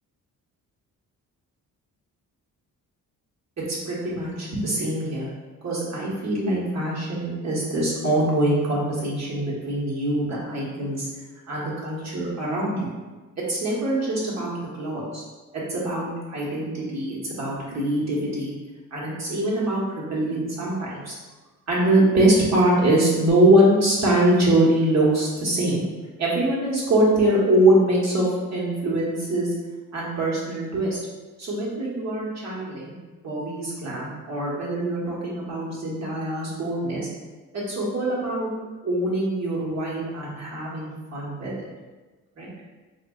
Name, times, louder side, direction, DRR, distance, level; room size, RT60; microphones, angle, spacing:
voice 1, 3.6-5.3 5.6-11.1 11.5-12.9 13.5-15.2 15.5-18.5 18.9-21.1 21.7-25.8 26.2-29.5 29.9-31.0 31.4-32.9 33.2-37.1 37.5-38.5 38.8-41.5 42.4-42.5, right 1 dB, 50° right, -6 dB, 1.3 m, -23 dB
4.1 x 2.4 x 2.3 m, 1.3 s
cardioid pair, 85°, 36 cm